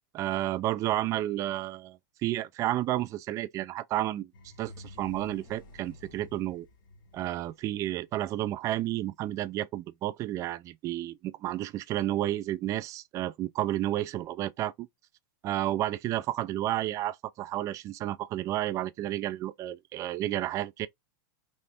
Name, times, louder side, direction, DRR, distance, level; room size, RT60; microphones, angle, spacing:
voice 1, 0.1-4.3 4.6-6.7 7.1-14.9 15.4-20.9, right 14 dB, 30° right, 0.4 m, -31 dB
sound 1, 4.3-8.2, left 2 dB, 80° left, 1.5 m, -50 dB
3.3 x 3.0 x 4.2 m
supercardioid pair, 140°, 11 cm